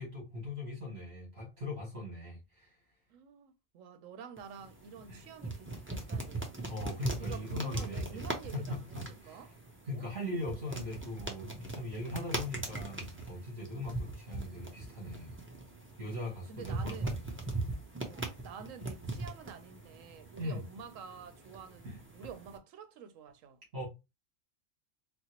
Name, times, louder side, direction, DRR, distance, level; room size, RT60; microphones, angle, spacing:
voice 1, 0.0-2.8 5.1-5.2 6.7-8.2 8.5-9.4 9.9-15.4 16.0-17.8 20.4-20.6 21.8-22.0 23.7-23.8, left 1 dB, 55° right, 2.0 m, -40 dB
voice 2, 3.1-6.5 7.1-9.0 9.3-9.6 9.9-10.1 16.0-16.1 16.5-17.1 18.1-21.8 22.1-23.6, right 6 dB, 85° right, 1.0 m, -49 dB
sound 1, 4.4-22.6, right 2 dB, 20° right, 0.3 m, -41 dB
4.3 x 2.0 x 2.8 m
omnidirectional pair, 1.3 m